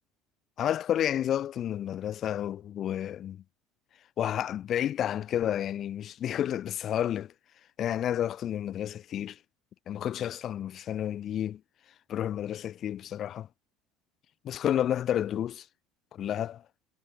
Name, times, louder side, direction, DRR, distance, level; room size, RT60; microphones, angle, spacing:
voice 1, 0.6-3.4 4.2-7.3 7.8-9.4 9.9-11.6 12.1-13.5 14.4-15.6 16.1-16.6, left 10 dB, 40° left, 3.1 m, -30 dB
figure-of-eight pair, 65°, 0 cm